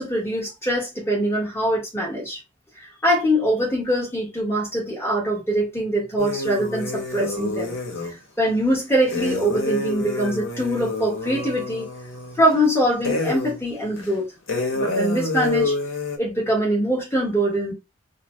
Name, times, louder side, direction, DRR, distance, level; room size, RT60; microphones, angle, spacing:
voice 1, 0.0-2.4 2.8-7.7 8.0-11.9 12.4-14.2 14.7-15.7 16.2-17.7, equal, 10° left, 1.4 m, -23 dB
sound 1, 6.2-8.2 9.1-12.7 13.0-13.6 14.0-14.1 14.5-16.2, left 2 dB, 85° left, 0.9 m, -27 dB
2.6 x 2.2 x 3.1 m
head